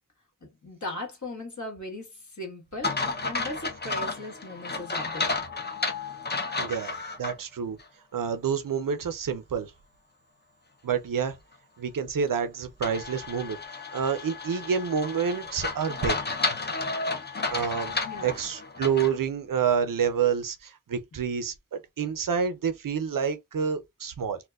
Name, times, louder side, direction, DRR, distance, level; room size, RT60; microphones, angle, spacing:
voice 1, 0.4-5.3 18.1-18.3, left 1 dB, 60° left, 1.6 m, -38 dB
sound 1, 2.8-7.3 7.8-7.9 12.8-19.2, left 3 dB, 30° left, 0.6 m, -32 dB
voice 2, 6.6-7.8 8.1-9.7 10.8-11.3 11.8-16.2 17.5-17.9 18.2-24.4, right 7 dB, 85° right, 0.6 m, -28 dB
4.2 x 2.2 x 2.3 m
wide cardioid pair, 75°, 32 cm